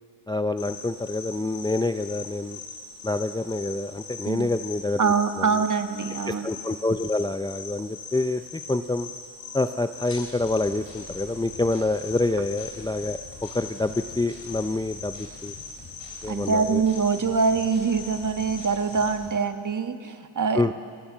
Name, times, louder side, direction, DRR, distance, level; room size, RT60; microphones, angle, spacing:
voice 1, 0.3-2.6 3.0-5.5 6.3-9.1 9.5-15.5 16.2-16.8 20.5-20.7, left 2 dB, 10° left, 9 dB, 0.5 m, -27 dB
sound 1, 0.6-19.1, left 4 dB, 45° left, 6.6 m, -41 dB
voice 2, 4.2-4.6 5.0-6.5 16.3-20.7, right 5 dB, 40° right, 7 dB, 1.5 m, -24 dB
sound 2, 10.0-19.3, left 4 dB, 65° left, 5.6 m, -47 dB
25.0 x 18.5 x 7.3 m, 2.2 s
cardioid pair, 80°, 48 cm